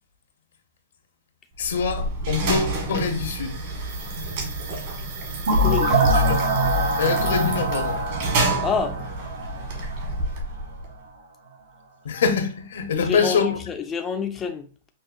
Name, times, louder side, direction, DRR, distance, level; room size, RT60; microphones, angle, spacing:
voice 1, 1.6-3.5 6.1-6.4 7.0-8.3 12.0-13.6, left 5 dB, 80° left, 0.8 m, -25 dB
sound 1, 1.6-10.9, right 2 dB, 50° right, 1.4 m, -29 dB
voice 2, 5.5-6.2 8.6-9.0 12.9-14.9, left 6 dB, 20° left, 0.3 m, -28 dB
sound 2, 5.5-10.2, right 1 dB, 70° right, 0.8 m, -23 dB
5.4 x 2.1 x 2.5 m
hypercardioid pair, 145°, 0 cm